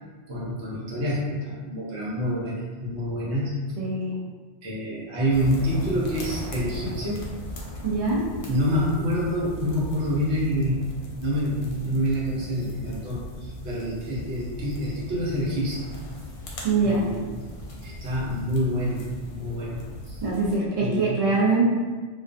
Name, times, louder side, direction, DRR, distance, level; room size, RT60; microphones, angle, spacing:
voice 1, 0.3-3.6 4.6-7.2 8.5-10.9 11.2-15.8 16.8-17.4 17.8-19.8 20.0-20.2 20.8-21.2, equal, 85° right, -6 dB, 1.0 m, -27 dB
voice 2, 3.8-4.2 7.8-8.2 16.6-17.0 20.2-21.7, right 3 dB, 45° right, -5 dB, 0.4 m, -23 dB
sound 1, 5.3-20.6, left 1 dB, 60° left, 0.6 m, -38 dB
2.4 x 2.2 x 2.4 m, 1.4 s
omnidirectional pair, 1.1 m